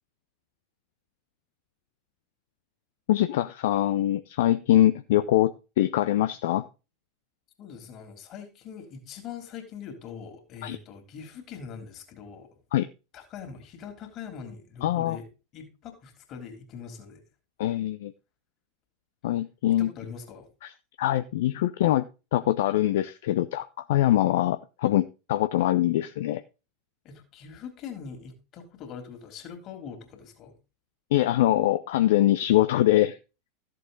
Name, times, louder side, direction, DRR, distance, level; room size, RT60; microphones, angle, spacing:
voice 1, 3.1-6.6 10.6-10.8 12.7-12.9 14.8-15.2 17.6-18.1 19.2-19.9 20.6-20.7 21.0-26.4 31.1-33.2, left 13 dB, 55° left, 0.6 m, -23 dB
voice 2, 7.6-12.5 13.1-15.3 15.5-17.2 19.7-20.5 27.0-30.5, left 6 dB, 35° left, 3.4 m, -42 dB
14.0 x 7.7 x 3.9 m
figure-of-eight pair, 85°, 0 cm